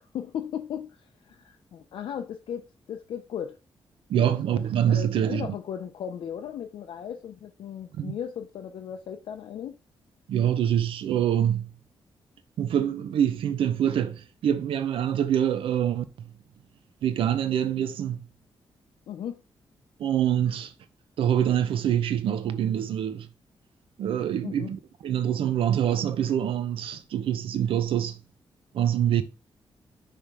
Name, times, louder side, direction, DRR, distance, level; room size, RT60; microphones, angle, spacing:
voice 1, 0.0-3.6 4.1-4.4 4.9-9.7 19.1-19.4 24.4-24.7, left 9 dB, 75° left, 0.6 m, -36 dB
voice 2, 4.1-5.5 8.0-8.1 10.3-11.7 12.6-16.3 17.0-18.2 20.0-20.7 21.2-23.3 24.0-28.2 28.7-29.2, right 10 dB, 90° right, 0.7 m, -25 dB
5.7 x 3.5 x 4.8 m
wide cardioid pair, 165°, 9 cm